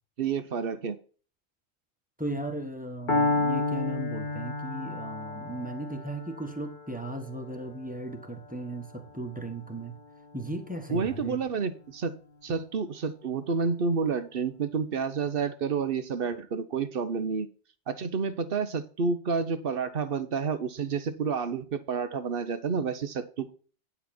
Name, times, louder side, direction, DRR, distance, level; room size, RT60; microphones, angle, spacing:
voice 1, 0.2-1.0 10.9-12.2 12.4-17.5 17.9-23.5, right 5 dB, 60° right, 12 dB, 1.1 m, -29 dB
voice 2, 2.2-9.9 10.3-11.4, right 1 dB, 10° right, 5 dB, 1.5 m, -36 dB
Piano, 3.1-11.0, left 2 dB, 50° left, 1.2 m, -32 dB
10.0 x 7.0 x 4.4 m, 0.39 s
omnidirectional pair, 1.1 m